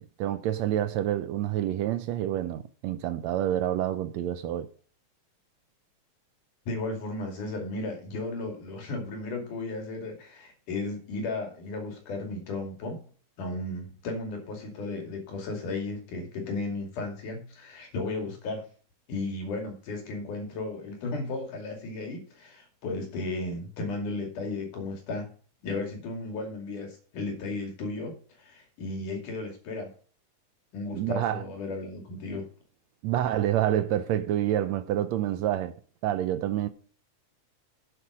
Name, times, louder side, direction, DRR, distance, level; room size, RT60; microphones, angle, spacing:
voice 1, 0.0-4.7 30.9-31.4 33.0-35.7 36.0-36.7, right 12 dB, 75° right, 1.7 m, -28 dB
voice 2, 6.7-13.0 13.4-18.7 19.1-25.3 25.6-29.9 30.7-32.5, left 2 dB, 80° left, 4.0 m, -34 dB
9.2 x 8.0 x 4.9 m
omnidirectional pair, 3.5 m